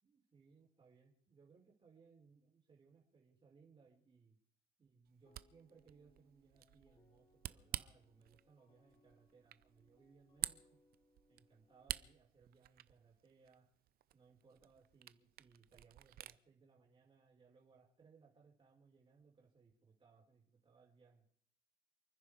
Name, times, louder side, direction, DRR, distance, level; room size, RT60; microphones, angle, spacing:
voice 1, 0.0-4.4 4.8-10.8 11.3-13.7 14.1-21.2, right 5 dB, 30° right, -3 dB, 4.2 m, -67 dB
Camera, 5.1-16.4, right 14 dB, 65° right, 0.7 m, -50 dB
sound 1, 5.3-12.1, left 2 dB, 30° left, 3.2 m, -74 dB
29.0 x 10.0 x 4.9 m, 0.66 s
cardioid pair, 110°, 17 cm